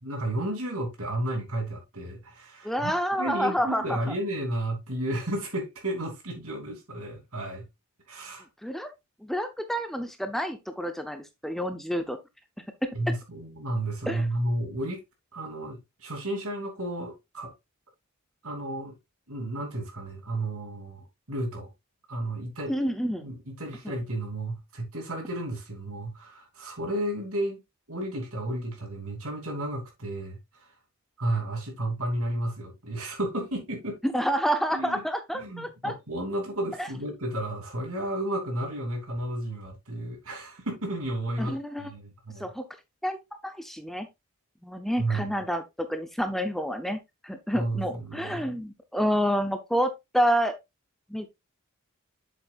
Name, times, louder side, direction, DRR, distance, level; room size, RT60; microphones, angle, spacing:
voice 1, 0.0-7.7 8.1-8.4 12.9-15.0 15.3-17.5 18.4-19.0 19.3-21.7 22.1-22.7 23.2-27.6 27.9-30.4 31.2-34.0 34.7-35.0 35.3-42.5 45.0-45.4 47.5-48.6, right 1 dB, 70° right, 3.0 m, -32 dB
voice 2, 2.6-4.0 8.6-8.9 9.2-12.2 12.8-12.9 14.1-14.3 22.7-23.3 34.0-35.9 36.8-36.9 41.4-41.9 42.4-42.6 43.0-43.2 43.4-44.1 44.6-50.6 51.1-51.3, equal, ahead, 0.6 m, -28 dB
7.5 x 7.3 x 2.4 m
head